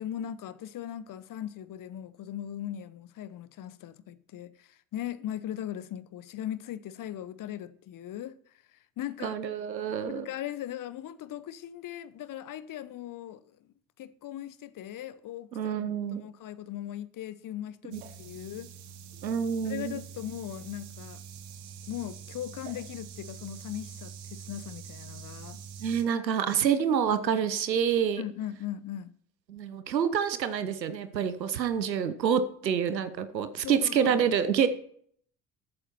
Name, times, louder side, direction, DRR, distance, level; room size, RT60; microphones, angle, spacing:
voice 1, 0.0-8.3 8.7-9.4 10.1-13.6 14.0-18.7 19.6-21.2 21.9-25.6 28.2-29.1 33.6-34.3, left 11 dB, 40° left, 0.9 m, -39 dB
voice 2, 9.2-10.3 15.5-16.3 19.2-20.0 25.8-28.2 29.5-34.7, right 7 dB, 80° right, 1.0 m, -27 dB
sound 1, 17.9-26.0, right 7 dB, 65° right, 1.7 m, -45 dB
14.0 x 8.9 x 4.4 m
figure-of-eight pair, 50°, 50 cm